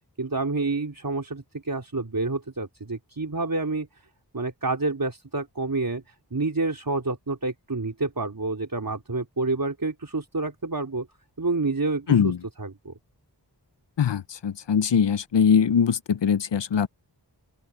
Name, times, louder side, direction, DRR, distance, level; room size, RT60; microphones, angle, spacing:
voice 1, 0.2-3.9 4.3-6.0 6.3-11.1 11.4-12.3 12.6-12.9, right 3 dB, 50° right, 3.2 m, -28 dB
voice 2, 14.0-16.9, left 7 dB, 85° left, 0.6 m, -22 dB
open air
wide cardioid pair, 55°, 42 cm